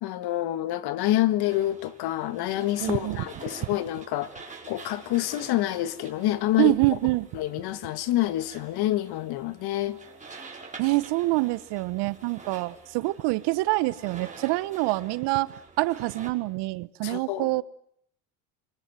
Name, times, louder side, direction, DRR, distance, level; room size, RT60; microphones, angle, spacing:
voice 1, 0.0-4.3 4.7-6.7 7.3-10.0 17.0-17.5, left 14 dB, 55° left, 12 dB, 1.7 m, -27 dB
sound 1, 1.5-16.3, right 4 dB, 15° right, 5.6 m, -47 dB
voice 2, 2.8-3.2 6.6-7.3 10.8-17.6, right 21 dB, 60° right, 17 dB, 1.1 m, -26 dB
27.0 x 25.0 x 8.0 m, 0.69 s
supercardioid pair, 115°, 46 cm